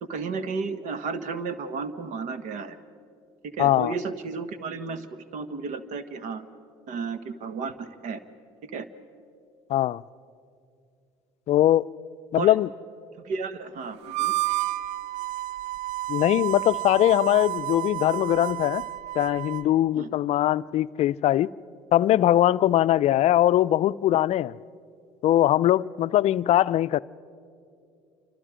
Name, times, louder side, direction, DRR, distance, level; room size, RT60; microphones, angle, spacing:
voice 1, 0.0-2.8 3.4-6.5 6.9-8.2 8.6-8.9 12.3-12.5 13.2-14.3 19.9-20.1, right 4 dB, 60° right, 12 dB, 1.5 m, -33 dB
voice 2, 3.6-3.9 9.7-10.0 11.5-11.9 12.3-12.7 16.1-18.8 19.1-21.5 21.9-24.5 25.2-27.0, left 13 dB, 50° left, 18 dB, 0.5 m, -21 dB
Harmonica, 14.0-19.7, right 16 dB, 80° right, 0.6 m, -31 dB
28.5 x 25.5 x 5.1 m, 2.4 s
hypercardioid pair, 70°, 14 cm